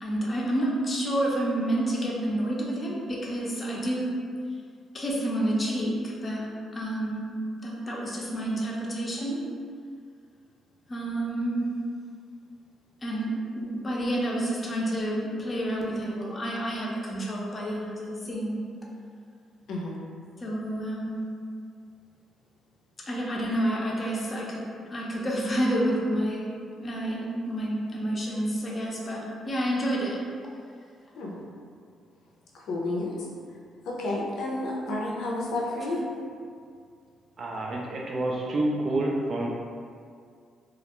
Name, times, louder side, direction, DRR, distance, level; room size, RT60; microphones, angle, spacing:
voice 1, 0.0-4.0 4.9-6.0 6.2-6.5 6.7-9.4 10.9-11.6 13.0-18.6 20.4-21.2 23.1-24.6 24.9-26.5 26.8-30.2, right 1 dB, 30° left, -4 dB, 0.5 m, -29 dB
voice 2, 32.5-33.1 33.9-36.0, left 2 dB, 80° left, -3 dB, 0.5 m, -30 dB
voice 3, 37.4-39.5, right 2 dB, 50° right, -2 dB, 0.3 m, -28 dB
2.4 x 2.0 x 2.9 m, 2.2 s
cardioid pair, 90°, 0 cm